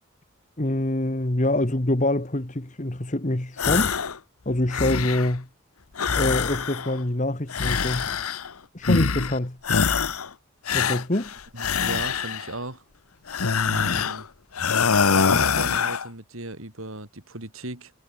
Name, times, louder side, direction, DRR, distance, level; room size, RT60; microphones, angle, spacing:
voice 1, 0.6-3.9 4.4-5.5 6.1-8.1 8.7-9.6 10.7-11.3, left 1 dB, 35° left, 1.4 m, -25 dB
sound 1, 3.6-4.2 4.5-5.4 6.0-7.0 7.5-8.5 8.8-9.4 9.6-10.3 10.7-12.5 13.3-14.2 14.6-16.1, left 6 dB, 85° left, 1.0 m, -24 dB
voice 2, 11.5-12.8 13.6-14.3 15.0-17.9, right 2 dB, 70° right, 5.1 m, -37 dB
head